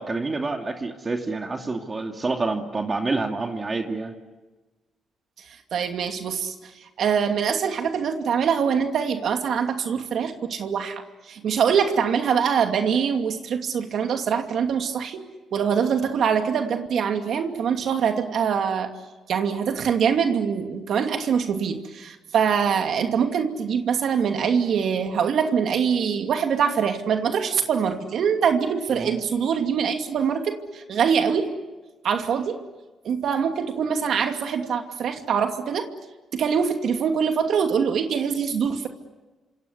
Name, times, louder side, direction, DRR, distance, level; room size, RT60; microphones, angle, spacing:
voice 1, 0.0-4.1 29.0-29.1, right 3 dB, 30° right, 3 dB, 2.6 m, -28 dB
voice 2, 5.7-6.7 7.0-15.2 15.5-18.9 19.3-31.5 32.0-32.6 33.0-35.9 36.3-38.9, right 7 dB, 65° right, 5 dB, 2.6 m, -24 dB
27.0 x 27.0 x 8.2 m, 1.2 s
cardioid pair, 90°, 0 cm